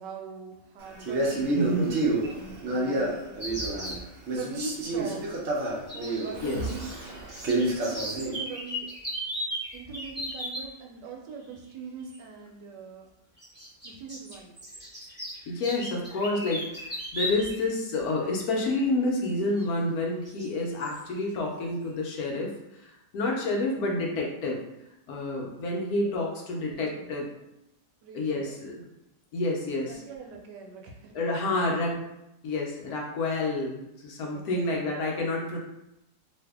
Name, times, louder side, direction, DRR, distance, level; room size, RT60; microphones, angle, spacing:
voice 1, 0.0-5.3 5.9-6.9 7.5-8.9 9.7-13.1 13.8-14.6 26.1-26.3 26.6-27.1 28.0-28.6 29.9-31.2 34.5-35.0, right 5 dB, 80° right, 1 dB, 1.2 m, -42 dB
Male speech man speaking, 1.0-4.0 4.3-8.4, right 2 dB, 60° right, 0.7 m, -29 dB
voice 2, 1.5-2.0 6.4-6.6 15.5-24.6 25.1-27.3 28.1-28.9 29.3-30.0 31.1-32.1 32.4-35.6, left 2 dB, 70° left, -1 dB, 1.0 m, -29 dB
sound 1, 3.4-4.0 5.9-7.0 7.2-10.7 12.1-12.2 13.4-17.7 18.0-18.1 19.6-19.7 20.3-20.5 20.8-21.0, equal, 5° right, 1.2 m, -36 dB
2.7 x 2.6 x 3.4 m, 0.88 s
omnidirectional pair, 1.8 m